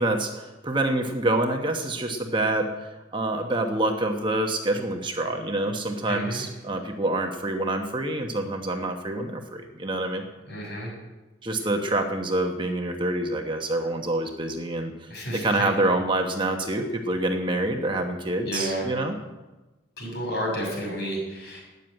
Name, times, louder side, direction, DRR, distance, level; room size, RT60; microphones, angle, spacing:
voice 1, 0.0-10.2 11.4-19.1, right 2 dB, 25° right, 4 dB, 1.1 m, -27 dB
voice 2, 6.1-6.4 10.5-10.9 15.1-15.7 18.4-18.9 20.0-21.6, equal, 55° left, -1 dB, 6.8 m, -31 dB
13.5 x 9.4 x 8.9 m, 1.1 s
head